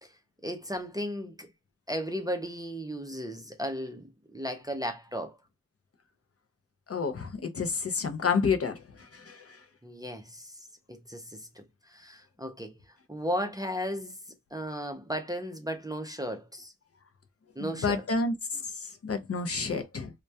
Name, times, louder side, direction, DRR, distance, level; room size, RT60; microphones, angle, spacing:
voice 1, 0.4-1.5 1.9-5.4 9.8-10.5 10.9-12.7 13.1-14.2 14.5-16.7 17.6-18.0, equal, 10° right, 0.4 m, -35 dB
voice 2, 6.9-9.5 17.6-20.1, left 4 dB, 45° left, 0.5 m, -30 dB
2.2 x 2.2 x 2.6 m
wide cardioid pair, 90°, 33 cm